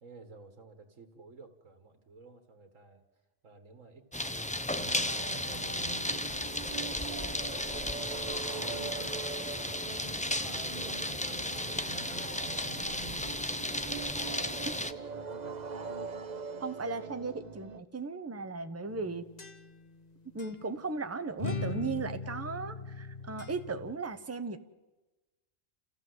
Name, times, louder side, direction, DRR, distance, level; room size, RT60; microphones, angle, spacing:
voice 1, 0.0-3.0 3.4-7.1 7.5-10.0 10.3-13.2 13.9-15.6, right 3 dB, 75° right, 5 dB, 2.1 m, -53 dB
sound 1, 4.1-14.9, left 1 dB, 10° left, 0.5 m, -34 dB
sound 2, 4.8-17.8, right 5 dB, 40° right, 1.0 m, -42 dB
voice 2, 16.6-19.2 20.3-24.6, right 4 dB, 15° right, 9 dB, 0.8 m, -36 dB
sound 3, 18.9-20.0 20.4-20.6 21.4-23.9, left 4 dB, 35° left, 1.3 m, -39 dB
29.5 x 15.5 x 7.9 m, 1.1 s
omnidirectional pair, 1.3 m